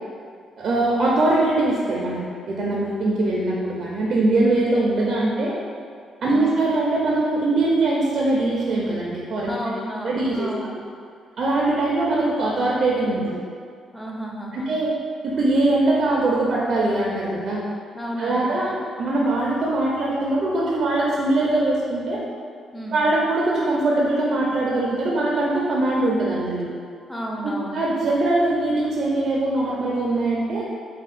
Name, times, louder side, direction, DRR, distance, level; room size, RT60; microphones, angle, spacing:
voice 1, 0.6-2.2 2.5-5.5 6.2-9.6 10.0-10.8 11.4-13.4 14.5-14.9 15.2-17.6 18.2-18.7 19.0-22.2 22.9-26.7 27.4-30.6, right 2 dB, 55° right, -4 dB, 0.6 m, -22 dB
voice 2, 9.5-10.7 13.9-14.7 17.9-18.5 22.7-23.0 27.1-27.8, equal, 5° left, -2 dB, 0.6 m, -32 dB
3.6 x 2.3 x 4.2 m, 2.2 s
cardioid pair, 90°, 0 cm